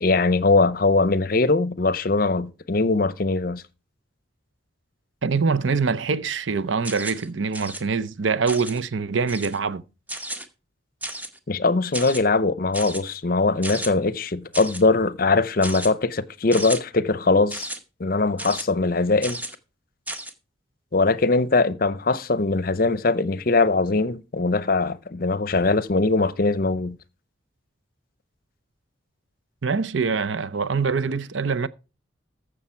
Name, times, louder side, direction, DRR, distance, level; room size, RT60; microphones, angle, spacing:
voice 1, 0.0-3.6 11.5-17.7 18.0-19.4 20.9-27.0, left 3 dB, 45° left, 0.6 m, -21 dB
voice 2, 5.2-9.8 29.6-31.7, right 5 dB, 75° right, 0.7 m, -24 dB
sound 1, 6.8-7.3 7.5-7.8 8.5-8.8 9.3-9.6 10.1-10.5 11.0-11.4 11.9-12.2 12.7-13.0 13.6-13.9 14.5-14.8 15.6-15.9 16.5-16.8 17.5-17.8 18.4-18.6 19.2-19.5 20.1-20.3, right 1 dB, 10° right, 0.9 m, -33 dB
14.5 x 6.4 x 4.4 m
head